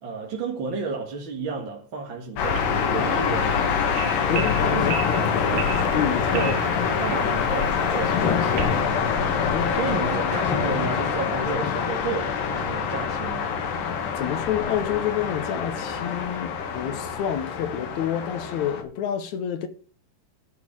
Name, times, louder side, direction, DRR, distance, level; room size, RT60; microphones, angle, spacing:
voice 1, 0.0-3.5 4.3-5.9 6.3-6.6 7.0-8.2 9.7-13.5, right 5 dB, 45° right, 2.0 m, -32 dB
sound 1, 2.4-18.8, left 6 dB, 85° left, 3.2 m, -25 dB
sound 2, 2.4-8.8, right 9 dB, 75° right, 2.3 m, -36 dB
voice 2, 2.9-3.4 4.3-5.4 5.9-7.0 8.4-8.8 9.5-9.8 14.1-19.7, left 9 dB, 70° left, 2.2 m, -29 dB
12.0 x 4.7 x 7.4 m
omnidirectional pair, 3.8 m